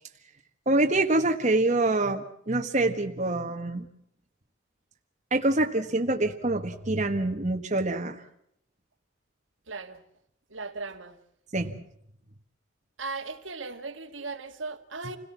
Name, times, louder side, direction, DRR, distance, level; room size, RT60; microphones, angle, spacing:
voice 1, 0.7-3.9 5.3-8.2 11.5-11.8, right 2 dB, 40° right, 1.5 m, -25 dB
voice 2, 9.7-10.0 10.5-11.2 13.0-15.2, right 3 dB, 80° right, 2.0 m, -37 dB
28.0 x 17.5 x 7.3 m
head